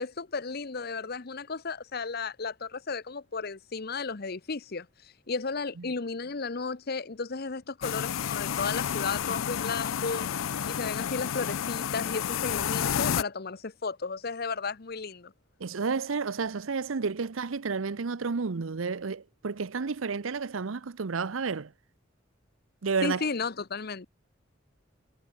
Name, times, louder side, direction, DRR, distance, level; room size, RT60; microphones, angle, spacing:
voice 1, 0.0-10.3 10.7-15.3 23.0-24.1, left 4 dB, 50° left, 0.9 m, -34 dB
sound 1, 7.8-13.2, left 8 dB, 85° left, 0.5 m, -30 dB
voice 2, 15.6-21.7 22.8-23.2, right 5 dB, 90° right, 0.7 m, -31 dB
head